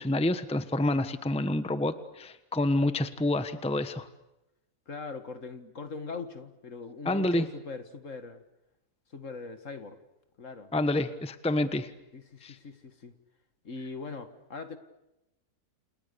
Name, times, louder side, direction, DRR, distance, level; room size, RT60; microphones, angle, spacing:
voice 1, 0.0-4.1 7.0-7.5 10.7-11.9 12.4-12.6, left 1 dB, 5° left, 11 dB, 1.1 m, -28 dB
voice 2, 4.9-8.4 9.1-10.0 10.4-10.7 12.1-13.1 13.6-14.8, left 4 dB, 50° left, 9 dB, 2.1 m, -41 dB
29.5 x 29.0 x 6.9 m, 0.93 s
omnidirectional pair, 1.7 m